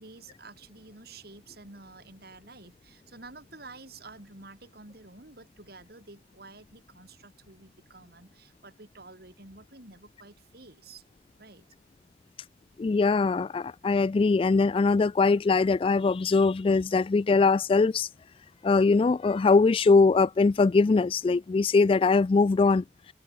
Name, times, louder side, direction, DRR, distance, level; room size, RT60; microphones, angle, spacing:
voice 1, 0.0-11.0 11.4-11.7, right 3 dB, 55° right, 7.6 m, -50 dB
voice 2, 12.8-18.1 18.6-22.8, left 4 dB, 30° left, 0.3 m, -22 dB
head